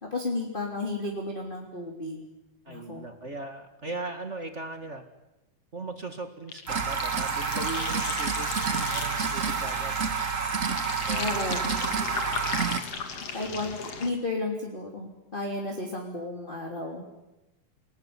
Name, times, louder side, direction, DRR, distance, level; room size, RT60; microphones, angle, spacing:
voice 1, 0.0-2.2 2.7-3.1 11.2-12.0 13.3-17.0, left 2 dB, 15° left, 0 dB, 3.2 m, -33 dB
voice 2, 2.6-5.0 5.7-10.0 11.1-12.3 13.5-13.7, right 2 dB, 30° right, 6 dB, 1.5 m, -39 dB
sound 1, 6.5-14.1, left 5 dB, 50° left, 3.2 m, -36 dB
sound 2, 6.7-12.8, right 5 dB, 50° right, 0.9 m, -29 dB
29.0 x 19.5 x 9.8 m, 0.98 s
omnidirectional pair, 3.9 m